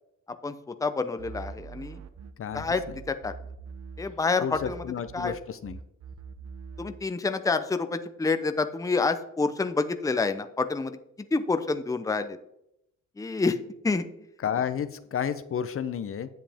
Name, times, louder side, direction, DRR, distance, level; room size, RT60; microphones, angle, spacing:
voice 1, 0.4-2.0 2.5-3.3 4.0-4.8 5.1-5.3 6.8-12.4 13.2-13.6 13.8-14.1, left 4 dB, 10° left, 9 dB, 0.7 m, -28 dB
sound 1, 1.2-4.3 4.5-7.1, right 5 dB, 60° right, 0.9 m, -43 dB
voice 2, 4.4-5.8 14.4-16.3, left 8 dB, 45° left, 11 dB, 0.7 m, -31 dB
10.0 x 7.5 x 3.5 m, 0.78 s
cardioid pair, 90°, 30 cm